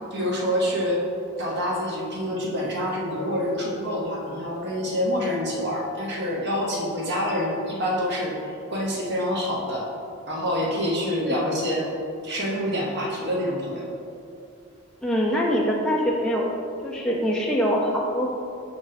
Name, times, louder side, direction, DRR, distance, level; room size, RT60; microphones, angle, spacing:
voice 1, 0.1-1.0 1.4-9.9 10.3-11.9 12.2-13.9, equal, 50° right, -3 dB, 0.9 m, -26 dB
voice 2, 15.0-16.5 16.8-18.3, equal, 5° left, -3 dB, 0.4 m, -23 dB
5.4 x 4.9 x 3.9 m, 2.5 s
head